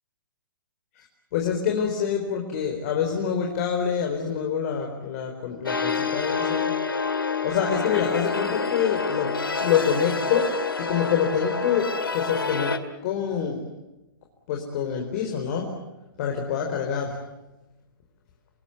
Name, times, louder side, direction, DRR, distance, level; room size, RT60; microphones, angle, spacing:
voice 1, 1.3-6.7 7.4-9.3 9.6-10.5 10.8-12.7 13.0-13.7 14.5-15.7 16.2-17.2, left 7 dB, 45° left, 2 dB, 4.4 m, -26 dB
sound 1, 5.7-12.8, left 4 dB, 85° left, 2.0 m, -28 dB
28.0 x 20.0 x 9.5 m, 1.0 s
figure-of-eight pair, 120°, 12 cm